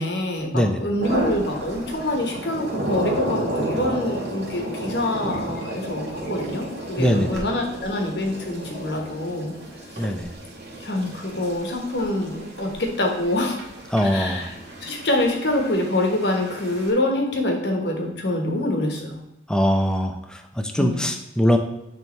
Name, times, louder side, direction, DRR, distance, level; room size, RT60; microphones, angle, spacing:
voice 1, 0.0-9.6 9.9-10.1 10.8-13.6 14.0-14.5 14.8-19.2 20.8-21.0, left 1 dB, 75° left, 2 dB, 1.2 m, -25 dB
voice 2, 0.5-0.9 7.0-7.4 10.0-10.3 13.9-14.4 19.5-21.6, equal, 5° left, 5 dB, 0.5 m, -22 dB
sound 1, 1.0-16.9, right 1 dB, 65° right, 1.8 m, -32 dB
9.0 x 3.4 x 3.2 m, 0.93 s
head